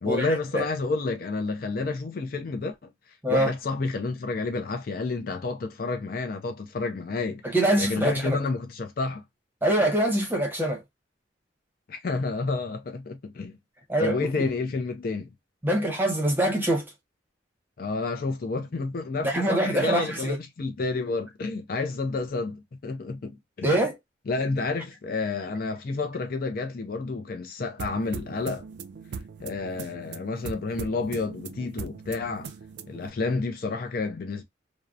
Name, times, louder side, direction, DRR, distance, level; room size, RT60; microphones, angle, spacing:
voice 1, 0.0-2.9 3.3-7.4 7.8-9.2 11.9-13.6 14.0-15.3 17.8-23.8 24.3-28.7 29.4-32.5 32.9-34.4, left 3 dB, 50° left, 0.4 m, -30 dB
voice 2, 7.4-8.4 9.6-10.8 13.9-14.2 15.6-16.8 19.2-20.4 23.6-24.0, right 1 dB, 10° right, 0.8 m, -24 dB
sound 1, 27.8-33.1, right 5 dB, 60° right, 0.3 m, -40 dB
2.7 x 2.0 x 2.3 m
head